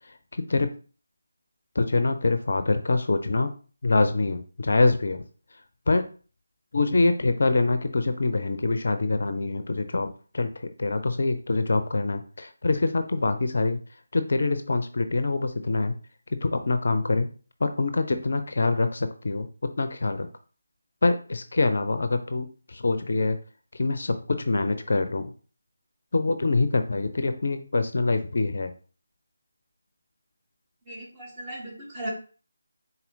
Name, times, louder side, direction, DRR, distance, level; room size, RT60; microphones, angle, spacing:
voice 1, 1.8-3.5 3.8-5.2 5.9-6.1 6.7-13.8 14.1-15.9 16.4-17.3 17.6-20.3 21.0-23.4 23.7-25.3 26.1-28.7, left 3 dB, 55° left, 9 dB, 0.4 m, -25 dB
voice 2, 30.9-32.1, right 1 dB, 20° right, -4 dB, 1.5 m, -37 dB
4.1 x 4.1 x 2.7 m, 0.38 s
figure-of-eight pair, 155°, 0 cm